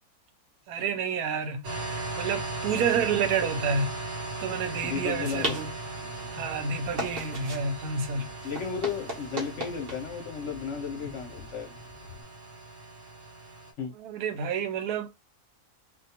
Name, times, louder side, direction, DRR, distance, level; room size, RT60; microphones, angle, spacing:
voice 1, 0.7-3.9 4.4-5.7 6.3-8.3 13.9-15.1, right 6 dB, 85° right, 1.1 m, -29 dB
sound 1, 1.6-13.7, right 2 dB, 60° right, 1.2 m, -38 dB
sound 2, 4.7-12.2, right 1 dB, 45° right, 0.9 m, -39 dB
voice 2, 4.8-5.6 8.4-11.7 13.8-13.9, left 6 dB, 60° left, 0.9 m, -34 dB
2.5 x 2.3 x 2.8 m
omnidirectional pair, 1.6 m